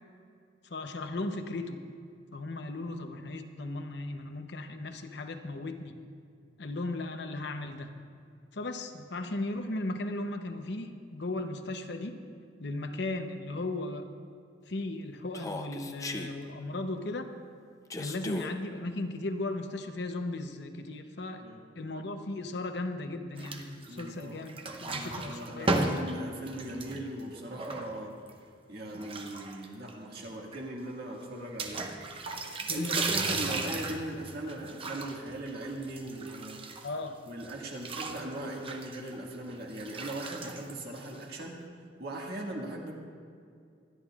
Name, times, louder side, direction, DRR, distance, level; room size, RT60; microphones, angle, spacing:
voice 1, 0.7-1.8 2.3-6.0 6.6-8.0 8.5-12.2 12.6-14.0 14.7-17.3 18.0-21.4 21.8-24.6 24.8-25.7 32.7-33.4 36.8-37.1, left 2 dB, 60° left, 7 dB, 0.8 m, -36 dB
Human voice, 15.3-16.3 17.9-18.5, left 2 dB, 15° left, 0.6 m, -37 dB
sound 1, 23.4-24.2 24.5-28.3 28.9-29.9 30.2-30.3 30.5-30.6 31.6-37.1 37.4-41.4, right 3 dB, 30° right, 0.8 m, -35 dB
voice 2, 23.9-24.4 24.8-28.1 28.7-31.9 32.7-36.8 37.3-41.6 42.0-42.9, right 1 dB, 55° right, -1 dB, 1.9 m, -39 dB
24.0 x 11.0 x 2.4 m, 2.3 s
head